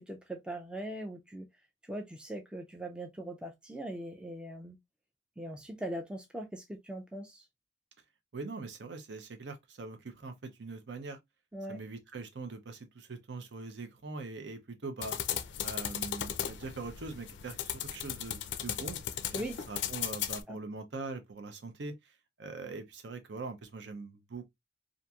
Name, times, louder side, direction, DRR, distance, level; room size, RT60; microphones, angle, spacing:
voice 1, 0.0-1.5 1.8-4.8 5.4-7.4 11.5-11.8 19.3-19.6 20.5-20.6, right 1 dB, 5° right, 0.3 m, -40 dB
voice 2, 8.3-11.2 11.7-15.2 15.6-19.0 19.3-24.5, right 3 dB, 70° right, 0.6 m, -42 dB
sound 1, 15.0-20.4, left 10 dB, 75° left, 0.3 m, -36 dB
2.8 x 2.5 x 2.2 m
head